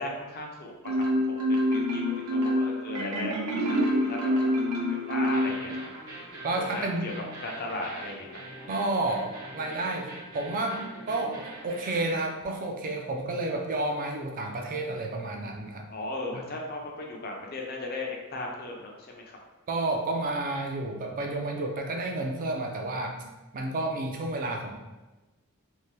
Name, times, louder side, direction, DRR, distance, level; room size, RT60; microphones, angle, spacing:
voice 1, 0.0-3.3 3.6-5.8 6.6-7.1 7.4-8.4 15.9-19.4, left 2 dB, 45° left, 0 dB, 0.5 m, -37 dB
Marimba xylophone, 0.8-6.0, equal, 85° right, 0.6 m, -26 dB
sound 1, 5.3-12.2, right 1 dB, 65° right, 1.0 m, -43 dB
voice 2, 6.4-7.1 8.7-10.1 10.3-15.8 16.3-16.4 19.7-23.2 23.5-24.7, right 2 dB, 40° right, 2 dB, 0.4 m, -31 dB
2.8 x 2.1 x 3.2 m, 1.1 s
head